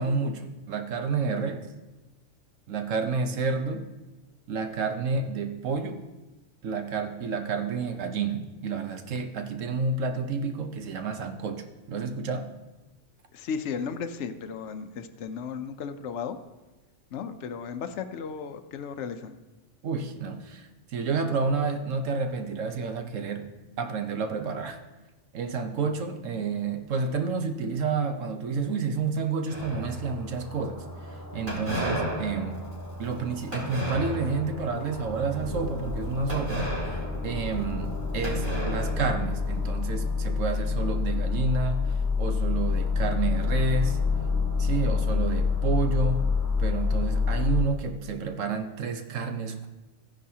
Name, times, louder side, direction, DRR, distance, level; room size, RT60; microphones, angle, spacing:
voice 1, 0.0-1.7 2.7-3.9 4.5-6.1 6.6-12.5 19.8-23.5 23.8-24.8 25.3-32.6 33.0-44.0 44.6-46.3 46.6-49.7, right 4 dB, 80° right, 7 dB, 1.3 m, -30 dB
voice 2, 13.3-16.4 17.1-19.4, left 6 dB, 70° left, 8 dB, 0.9 m, -35 dB
sound 1, 29.5-30.3 31.5-34.6 35.0-35.3 36.3-37.9 38.2-39.6, right 1 dB, 40° right, 3.1 m, -34 dB
sound 2, 29.7-47.6, left 4 dB, 15° left, 0.9 m, -28 dB
14.5 x 10.0 x 2.8 m, 1.1 s
omnidirectional pair, 1.3 m